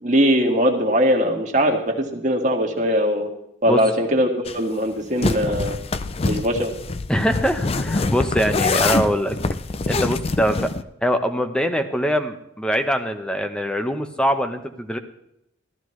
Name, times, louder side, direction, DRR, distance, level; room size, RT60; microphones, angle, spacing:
voice 1, 0.0-3.3 3.6-5.8 6.2-6.7, equal, 40° right, 2 dB, 1.7 m, -20 dB
sound 1, 4.5-4.6 5.2-10.8, left 3 dB, 30° left, 0.4 m, -24 dB
voice 2, 7.1-9.4 9.9-10.7 11.0-15.0, equal, 5° left, 7 dB, 0.9 m, -23 dB
15.5 x 13.5 x 3.2 m, 0.79 s
head